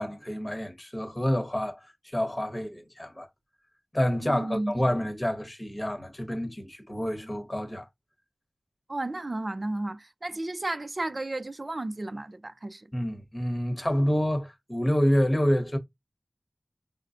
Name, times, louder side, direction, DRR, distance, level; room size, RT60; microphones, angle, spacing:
voice 1, 0.0-1.8 2.1-3.3 3.9-7.9 12.9-15.8, equal, 25° left, 1.0 m, -28 dB
voice 2, 4.2-4.7 8.9-12.9, right 2 dB, 45° right, 0.4 m, -33 dB
5.3 x 2.1 x 2.5 m
wide cardioid pair, 45°, 0 cm